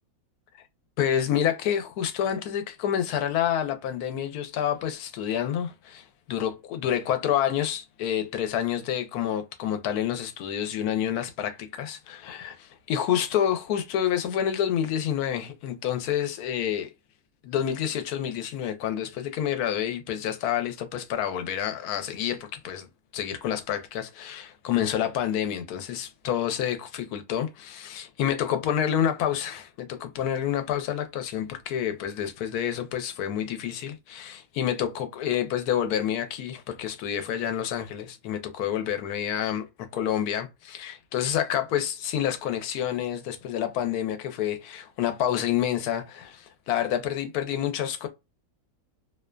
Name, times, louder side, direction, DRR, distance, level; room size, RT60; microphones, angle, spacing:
voice 1, 1.0-16.9 17.4-22.9 23.1-39.7 39.9-48.1, left 10 dB, 85° left, 1.1 m, -28 dB
2.6 x 2.2 x 2.2 m
omnidirectional pair, 1.6 m